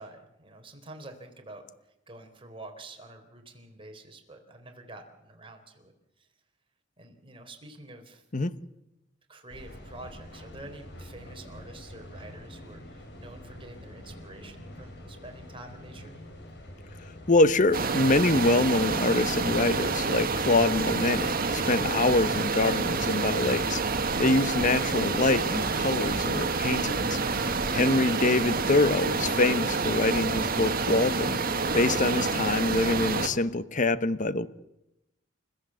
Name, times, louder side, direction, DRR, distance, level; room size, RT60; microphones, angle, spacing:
voice 1, 0.0-1.6 2.1-5.9 6.2-6.3 7.0-8.2 9.3-16.1 27.9-28.1, right 2 dB, 30° right, 4 dB, 3.9 m, -47 dB
sound 1, 9.5-27.7, left 1 dB, 60° left, 5.6 m, -46 dB
voice 2, 17.3-23.8 24.2-27.2 27.7-31.4 31.7-34.5, left 2 dB, 40° left, 14 dB, 1.0 m, -25 dB
sound 2, 17.7-33.3, right 4 dB, 50° right, 1.8 m, -28 dB
29.5 x 15.5 x 7.7 m, 0.89 s
head